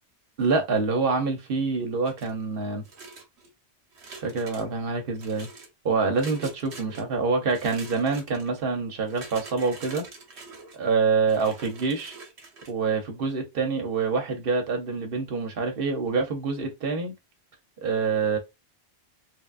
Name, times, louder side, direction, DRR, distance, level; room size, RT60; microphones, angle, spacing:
voice 1, 0.4-2.8 4.1-5.5 5.8-10.0 10.7-12.2 12.7-17.1 17.8-18.4, right 4 dB, 60° right, 0.9 m, -26 dB
sound 1, 2.1-2.4 2.8-3.5 3.9-4.7 5.1-5.7 6.1-7.0 7.5-8.5 9.0-10.8 11.3-12.7, right 3 dB, 75° right, 1.0 m, -44 dB
3.2 x 2.3 x 2.4 m
omnidirectional pair, 1.1 m